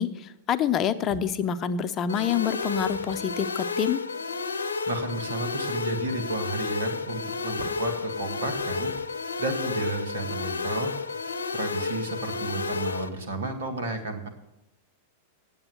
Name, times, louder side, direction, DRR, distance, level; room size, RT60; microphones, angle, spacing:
voice 1, 0.0-4.0, left 8 dB, 35° left, 11 dB, 0.7 m, -27 dB
sound 1, 1.1-1.5 2.4-3.4 7.6-8.0 8.5-9.3, right 6 dB, 25° right, 1.1 m, -48 dB
sound 2, 2.1-13.1, left 4 dB, 85° left, 0.8 m, -31 dB
voice 2, 4.5-8.9 9.4-10.9 11.2-14.3, right 2 dB, 80° right, 6 dB, 1.8 m, -32 dB
8.9 x 8.0 x 7.7 m, 0.93 s
hypercardioid pair, 100°, 0 cm